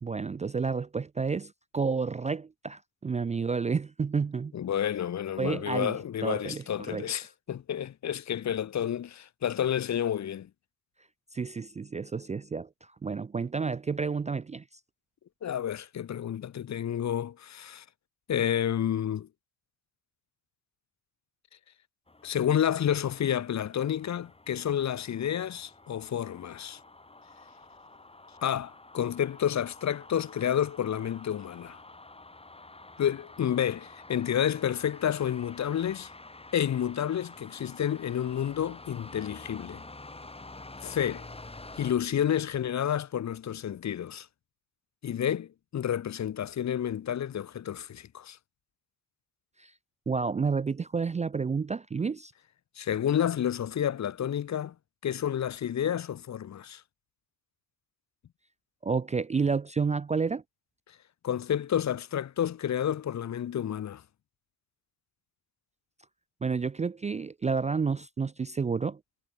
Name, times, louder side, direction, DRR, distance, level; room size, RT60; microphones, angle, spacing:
voice 1, 0.0-4.5 5.4-7.1 11.3-14.6 49.6-49.7 50.1-52.3 58.8-60.4 66.4-69.0, right 5 dB, 20° right, 0.4 m, -30 dB
voice 2, 4.5-10.5 15.4-17.8 18.3-19.3 22.2-26.8 28.4-31.8 33.0-36.1 36.5-39.8 40.8-41.3 41.8-44.3 45.0-48.4 52.8-54.7 55.0-56.8 61.2-64.0, left 9 dB, 45° left, 1.0 m, -30 dB
sound 1, 22.1-41.9, left 2 dB, 15° left, 3.1 m, -49 dB
supercardioid pair, 80°, 38 cm